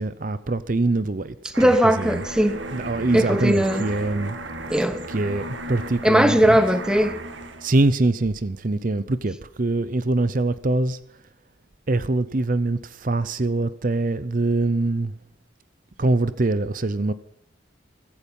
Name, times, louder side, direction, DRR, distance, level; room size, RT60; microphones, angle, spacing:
voice 1, 0.0-2.2 2.7-4.4 5.1-6.6 7.6-11.0 11.9-15.1 16.0-17.1, right 2 dB, 45° right, 0.7 m, -24 dB
sound 1, 1.5-7.7, right 1 dB, 75° right, 2.0 m, -34 dB
voice 2, 1.6-2.6 3.1-3.9 4.7-5.0 6.0-7.2, equal, 5° right, 1.0 m, -19 dB
15.5 x 14.5 x 5.4 m
head